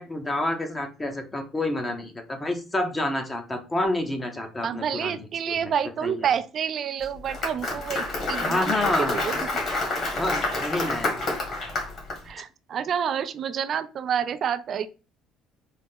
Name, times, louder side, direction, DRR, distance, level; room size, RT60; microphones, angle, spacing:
voice 1, 0.0-5.7 6.0-6.3 8.4-9.2 10.1-11.2, left 1 dB, 20° left, 4 dB, 0.7 m, -29 dB
voice 2, 4.6-8.7 9.0-9.4 12.3-14.9, right 8 dB, 45° right, 13 dB, 0.4 m, -28 dB
Applause, 7.0-12.2, left 2 dB, 45° left, 1.8 m, -28 dB
4.0 x 2.1 x 3.7 m, 0.32 s
cardioid pair, 115°, 0 cm